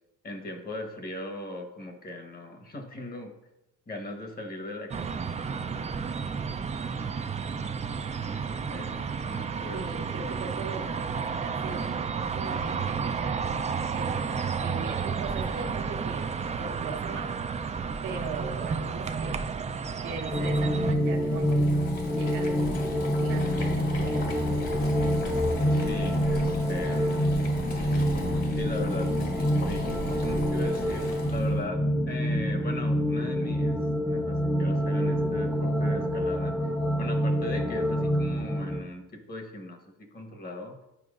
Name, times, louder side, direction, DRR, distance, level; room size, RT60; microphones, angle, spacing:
voice 1, 0.2-3.4 3.9-5.7 8.2-8.4 8.7-9.9 25.7-27.3 28.6-33.8 34.1-36.7 37.0-40.8, left 1 dB, 30° left, 4 dB, 1.1 m, -39 dB
sound 1, 4.9-20.9, right 5 dB, 25° right, 0.4 m, -32 dB
voice 2, 9.7-11.9 12.3-13.4 13.9-14.2 14.6-16.3 16.6-17.6 18.0-19.4 20.0-21.7 22.1-22.5 23.2-24.2, right 4 dB, 80° right, 1 dB, 1.1 m, -39 dB
Boiling, 20.3-31.6, left 1 dB, 55° left, 2.1 m, -36 dB
sound 2, 20.3-38.8, equal, ahead, 0.7 m, -27 dB
9.4 x 4.5 x 2.5 m, 0.91 s
cardioid pair, 90°, 30 cm